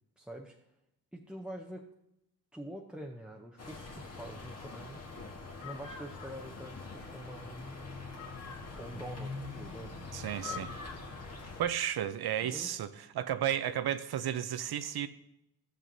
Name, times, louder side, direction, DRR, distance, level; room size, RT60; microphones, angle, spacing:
voice 1, 0.2-0.6 1.1-1.9 2.5-5.0 5.6-7.8 8.8-10.0 10.4-10.7 12.4-12.9, right 1 dB, ahead, 0 dB, 0.7 m, -45 dB
sound 1, 3.6-11.6, left 3 dB, 45° left, 1.4 m, -43 dB
voice 2, 10.1-10.7 11.6-15.1, right 10 dB, 85° right, 12 dB, 0.7 m, -33 dB
15.0 x 7.6 x 2.7 m, 0.84 s
wide cardioid pair, 135°, 37 cm